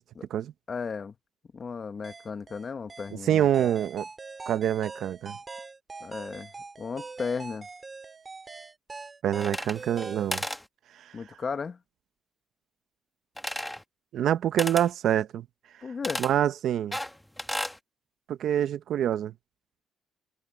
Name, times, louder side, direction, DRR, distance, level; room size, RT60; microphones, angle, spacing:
voice 1, 0.7-1.1 1.5-3.7 6.0-6.5 6.8-7.7 11.1-11.8 15.8-16.2, left 5 dB, 40° left, 1.7 m, -35 dB
sound 1, 2.0-10.3, right 4 dB, 30° right, 2.2 m, -43 dB
voice 2, 3.2-4.1 4.5-5.4 9.2-10.4 11.0-11.1 14.1-15.5 16.2-17.0 18.3-19.3, right 10 dB, 70° right, 1.0 m, -26 dB
sound 2, 9.4-10.1 10.3-10.6 13.4-13.8 14.6-14.9 16.0-16.3 16.9-17.8, left 1 dB, 5° left, 1.6 m, -33 dB
cardioid pair, 90°, 0 cm